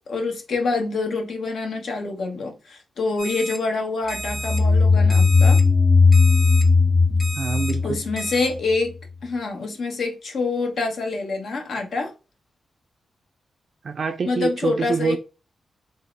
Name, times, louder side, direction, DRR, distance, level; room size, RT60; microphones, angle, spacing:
voice 1, 0.1-5.6 7.1-7.2 7.8-8.9 9.2-12.1 14.2-15.2, left 3 dB, 70° left, 0.9 m, -26 dB
Alarm, 3.2-3.6 4.1-4.6 5.1-5.6 6.1-6.6 7.2-7.7 8.2-8.5, right 1 dB, 50° left, 1.4 m, -32 dB
sound 1, 4.2-8.7, left 4 dB, 20° left, 0.5 m, -17 dB
voice 2, 7.4-8.0 13.8-15.2, right 5 dB, 60° right, 0.3 m, -25 dB
3.6 x 2.0 x 3.1 m
cardioid pair, 60°, 0 cm